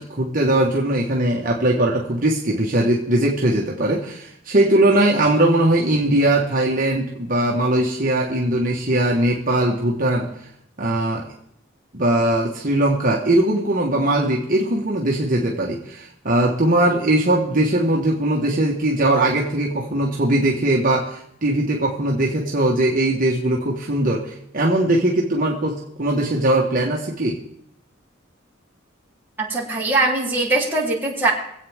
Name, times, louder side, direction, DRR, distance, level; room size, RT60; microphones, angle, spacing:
voice 1, 0.0-10.3 10.8-11.3 11.9-27.4, right 1 dB, 45° right, -2 dB, 1.5 m, -20 dB
voice 2, 29.4-31.3, right 2 dB, 10° right, -6 dB, 3.5 m, -21 dB
25.0 x 8.5 x 3.6 m, 0.75 s
head